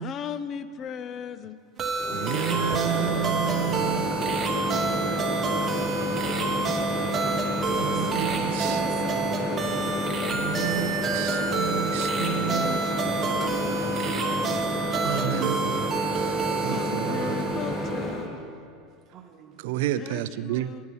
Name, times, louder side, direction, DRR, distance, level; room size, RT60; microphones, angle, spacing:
voice 1, 0.0-1.6 8.0-9.9 12.1-13.8 16.6-18.3 20.0-20.8, left 7 dB, 40° left, 0.5 m, -38 dB
sound 1, 1.8-18.0, right 5 dB, 25° right, 1.2 m, -29 dB
Microwave oven, 2.0-18.3, left 1 dB, 20° left, 1.8 m, -30 dB
voice 2, 2.1-4.2 7.8-8.8 10.3-12.8 14.9-17.6 19.6-20.7, right 12 dB, 75° right, 0.4 m, -31 dB
voice 3, 7.7-9.4 14.2-15.4 19.1-19.9, right 8 dB, 45° right, 0.9 m, -46 dB
9.7 x 9.6 x 5.5 m
supercardioid pair, 110°, 0 cm